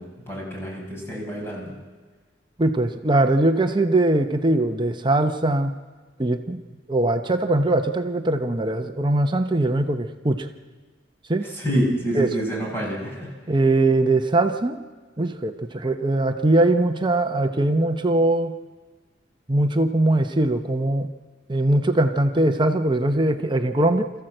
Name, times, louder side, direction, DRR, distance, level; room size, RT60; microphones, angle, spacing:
voice 1, 0.0-1.8 11.4-13.3, equal, 10° left, -2 dB, 5.7 m, -27 dB
voice 2, 2.6-5.7 6.2-6.6 6.9-10.5 11.3-11.5 12.1-12.3 13.5-14.8 15.2-18.5 19.5-21.1 21.5-24.1, right 2 dB, 25° right, 6 dB, 0.9 m, -21 dB
26.0 x 14.5 x 7.8 m, 1.4 s
head